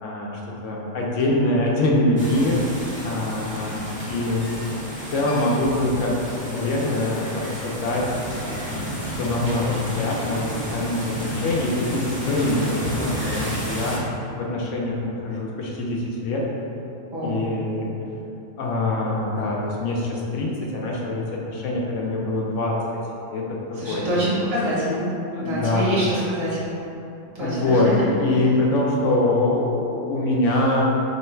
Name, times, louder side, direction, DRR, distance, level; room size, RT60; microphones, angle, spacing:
voice 1, 0.0-2.6 3.0-4.5 5.1-6.2 6.5-8.0 8.7-14.0 14.4-16.4 17.2-17.9 18.6-22.8 23.3-23.4 23.9-24.2 25.3-26.0 27.4-30.8, left 2 dB, 70° left, -3 dB, 0.9 m, -24 dB
sound 1, 2.2-14.0, equal, 10° right, 0.7 m, -32 dB
voice 2, 17.1-17.5 23.8-25.1 25.4-26.6 27.3-27.9, equal, 50° right, -8 dB, 1.3 m, -25 dB
3.2 x 3.1 x 4.4 m, 2.9 s
omnidirectional pair, 1.4 m